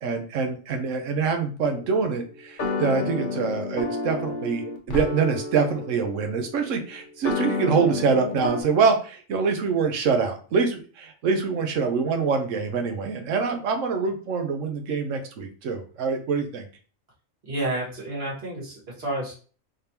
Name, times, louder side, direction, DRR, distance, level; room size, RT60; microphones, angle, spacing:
voice 1, 0.0-16.6, right 5 dB, 75° right, 5 dB, 1.1 m, -25 dB
sound 1, 1.7-8.6, left 3 dB, 45° left, 0.8 m, -31 dB
voice 2, 17.4-19.3, right 1 dB, 50° right, -5 dB, 2.0 m, -30 dB
3.6 x 3.4 x 2.8 m, 0.39 s
omnidirectional pair, 1.3 m